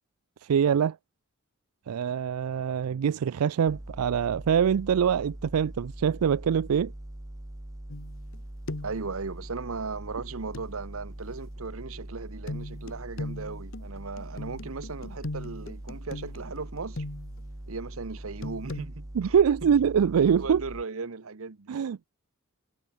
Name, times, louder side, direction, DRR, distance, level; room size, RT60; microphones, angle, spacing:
voice 1, 0.4-1.0 1.9-6.9 19.1-20.6 21.7-22.1, right 7 dB, 90° right, 0.4 m, -24 dB
sound 1, 3.7-20.8, right 1 dB, 15° right, 0.8 m, -42 dB
sound 2, 7.9-8.4 8.7-9.1 10.5-10.7 12.5-17.5 18.4-18.9, left 2 dB, 60° left, 1.3 m, -38 dB
voice 2, 8.8-17.0 17.7-19.4 20.4-21.8, right 4 dB, 70° right, 1.0 m, -37 dB
head